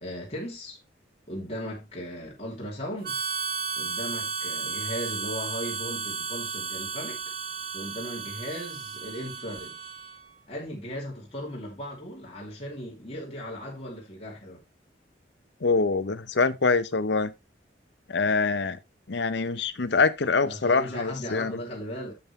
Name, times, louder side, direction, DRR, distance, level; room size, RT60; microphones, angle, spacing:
voice 1, 0.0-0.8 1.3-3.2 3.8-7.2 7.7-9.8 10.5-14.6 20.4-22.1, equal, 30° left, 2.8 m, -37 dB
Harmonica, 3.0-10.3, right 5 dB, 50° right, 1.4 m, -34 dB
voice 2, 15.6-17.3 18.1-18.8 19.1-21.6, left 4 dB, 65° left, 0.7 m, -25 dB
8.6 x 7.2 x 3.2 m
head